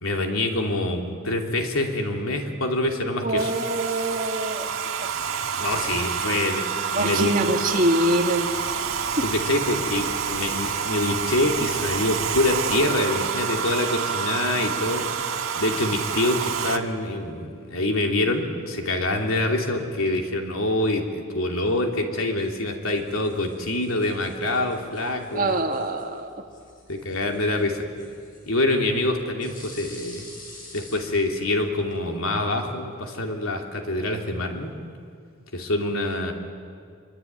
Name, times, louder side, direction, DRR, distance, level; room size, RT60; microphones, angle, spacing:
voice 1, 0.0-3.5 5.6-7.3 9.2-15.0 15.5-25.6 26.9-27.9 28.5-30.3 30.7-34.8 35.5-36.3, left 1 dB, 85° left, 3 dB, 3.0 m, -25 dB
voice 2, 3.2-4.8 6.9-8.4 25.3-26.3, right 1 dB, 40° right, 3 dB, 2.2 m, -24 dB
Domestic sounds home sounds, 3.4-16.8, right 7 dB, 80° right, 1.6 m, -28 dB
sound 1, 22.8-32.0, left 2 dB, 40° left, 6.0 m, -49 dB
25.5 x 24.0 x 9.5 m, 2.2 s
head